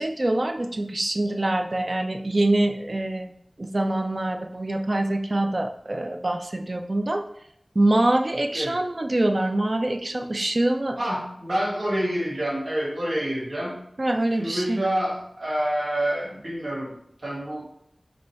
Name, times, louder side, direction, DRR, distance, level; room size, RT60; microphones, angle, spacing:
voice 1, 0.0-3.3 3.6-7.2 7.8-11.0 14.0-14.8, right 1 dB, 55° right, 5 dB, 0.4 m, -24 dB
voice 2, 11.0-13.8 14.4-16.9 17.2-17.6, right 1 dB, 90° right, -6 dB, 1.7 m, -27 dB
5.0 x 2.3 x 4.4 m, 0.71 s
wide cardioid pair, 55°, 0 cm